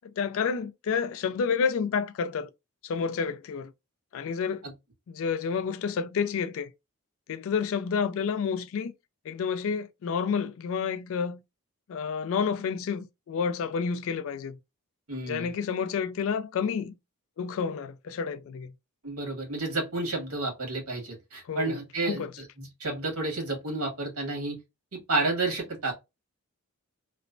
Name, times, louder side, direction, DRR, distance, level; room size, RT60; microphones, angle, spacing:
voice 1, 0.0-2.5 2.8-3.7 4.1-4.6 5.1-6.7 7.3-8.9 9.3-11.4 11.9-14.6 15.2-17.0 17.4-18.7 21.5-21.8 22.0-22.3, left 6 dB, 60° left, 0.3 m, -29 dB
voice 2, 15.1-15.5 19.0-24.6 24.9-25.9, right 2 dB, 75° right, 1.4 m, -31 dB
3.0 x 2.0 x 2.4 m
head